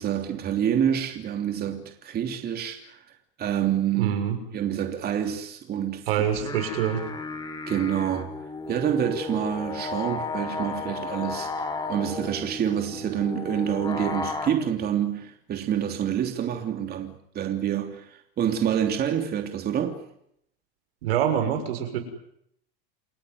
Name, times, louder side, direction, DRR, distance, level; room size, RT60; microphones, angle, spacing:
voice 1, 0.0-3.0 3.4-4.1 4.5-6.3 7.7-8.3 8.7-11.5 11.9-20.0, right 9 dB, 35° right, 3.2 m, -27 dB
voice 2, 3.9-4.4 6.1-7.0 21.0-22.0, right 9 dB, 80° right, 6.6 m, -25 dB
sound 1, 6.2-14.5, left 4 dB, 15° left, 3.9 m, -34 dB
29.5 x 17.0 x 9.6 m
supercardioid pair, 125°, 29 cm